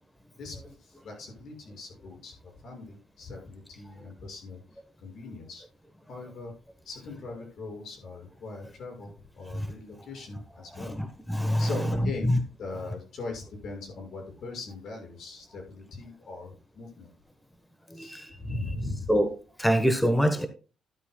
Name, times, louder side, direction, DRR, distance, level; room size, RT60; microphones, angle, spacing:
voice 1, 0.4-4.6 5.0-5.6 6.1-6.5 6.8-11.0 11.6-12.3 12.6-17.1 17.9-18.1 18.4-19.1, left 3 dB, 65° left, 2 dB, 6.1 m, -40 dB
voice 2, 10.7-12.4 17.9-18.4 19.1-19.3 19.6-20.5, equal, 5° left, 8 dB, 1.2 m, -25 dB
13.0 x 11.0 x 2.3 m, 0.34 s
cardioid pair, 90°, 0 cm